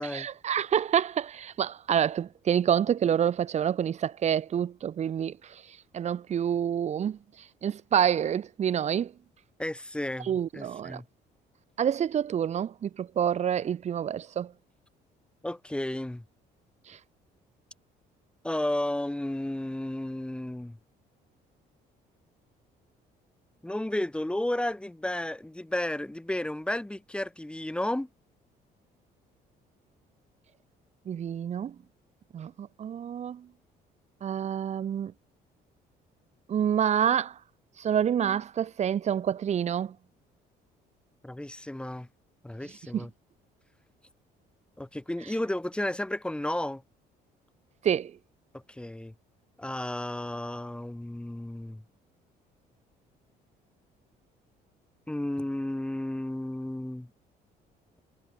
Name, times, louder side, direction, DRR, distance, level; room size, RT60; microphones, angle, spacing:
voice 1, 0.0-5.3 5.9-7.2 7.6-9.1 10.3-11.0 11.8-14.5 16.9-17.0 31.1-31.7 32.3-33.5 34.2-35.1 36.5-37.3 37.8-39.9 42.9-43.1 47.8-48.1, right 9 dB, 40° right, 0.9 m, -27 dB
voice 2, 9.6-11.0 15.4-16.2 18.4-20.8 23.6-28.1 41.2-42.1 42.4-43.1 44.8-46.8 48.5-49.1 49.6-51.8 55.1-57.1, left 1 dB, 5° left, 2.4 m, -33 dB
cardioid pair, 110°, 17 cm